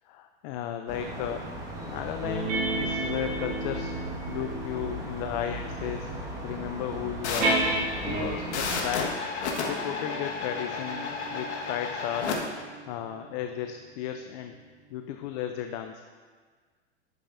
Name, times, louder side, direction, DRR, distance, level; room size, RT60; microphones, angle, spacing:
voice 1, 0.0-1.5 1.8-3.9 4.3-6.1 6.4-7.7 8.0-9.2 9.6-12.4 12.9-14.6 14.9-16.0, left 10 dB, 40° left, 6 dB, 0.4 m, -34 dB
sound 1, 0.9-9.1, right 1 dB, 10° right, 1.3 m, -38 dB
sound 2, 2.2-8.6 9.4-14.3, right 2 dB, 25° right, 2.0 m, -34 dB
sound 3, 7.2-12.4, left 4 dB, 75° left, 1.4 m, -33 dB
11.5 x 6.6 x 2.5 m, 1.5 s
hypercardioid pair, 115°, 34 cm